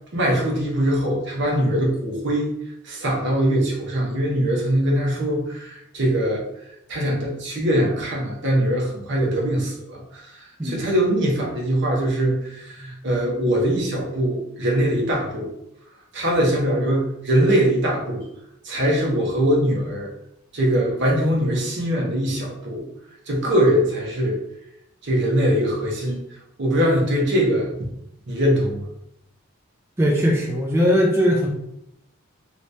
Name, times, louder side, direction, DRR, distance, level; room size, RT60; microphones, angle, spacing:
voice 1, 0.1-2.5 2.8-6.4 6.9-15.5 16.1-18.2 18.6-20.1 20.5-22.9 23.3-24.4 25.0-26.2 26.6-27.9 28.3-28.8, equal, 60° right, -2 dB, 0.9 m, -22 dB
voice 2, 30.0-31.5, equal, 15° right, -2 dB, 0.4 m, -19 dB
3.2 x 3.0 x 2.7 m, 0.79 s
head